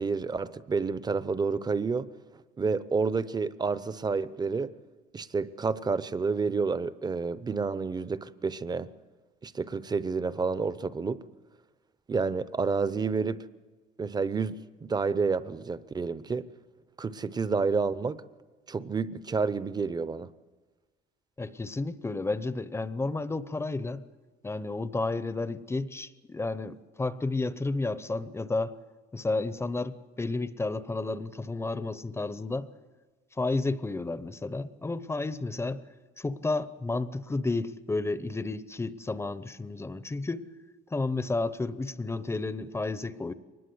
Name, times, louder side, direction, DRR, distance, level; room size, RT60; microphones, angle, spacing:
voice 1, 0.0-2.1 2.6-4.7 5.1-8.9 9.4-11.2 12.1-13.4 14.0-16.5 17.0-18.2 18.7-20.3, right 4 dB, 25° right, 0.8 m, -29 dB
voice 2, 21.4-24.0 24.4-28.7 29.1-32.7 33.4-35.8 36.2-40.5 40.9-43.3, left 3 dB, 15° left, 0.8 m, -31 dB
23.0 x 20.0 x 7.9 m
cardioid pair, 110°, 17 cm